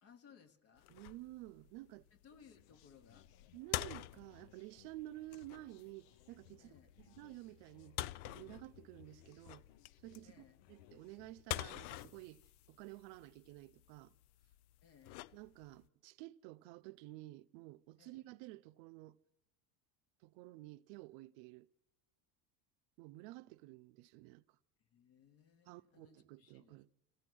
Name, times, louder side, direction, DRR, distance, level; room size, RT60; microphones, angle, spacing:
voice 1, 0.0-0.9 2.1-3.3 6.6-6.9 10.2-10.6 14.8-15.4 18.0-18.3 24.8-26.9, left 7 dB, 35° left, 1.1 m, -64 dB
sound 1, 0.8-15.9, left 17 dB, 90° left, 0.6 m, -48 dB
voice 2, 0.9-2.1 3.5-9.7 10.0-14.1 15.3-19.2 20.2-21.7 23.0-24.6 25.6-26.9, right 18 dB, 60° right, 0.7 m, -52 dB
sound 2, 2.4-11.4, left 10 dB, 70° left, 1.1 m, -65 dB
27.5 x 15.5 x 6.2 m
cardioid pair, 175°, 42 cm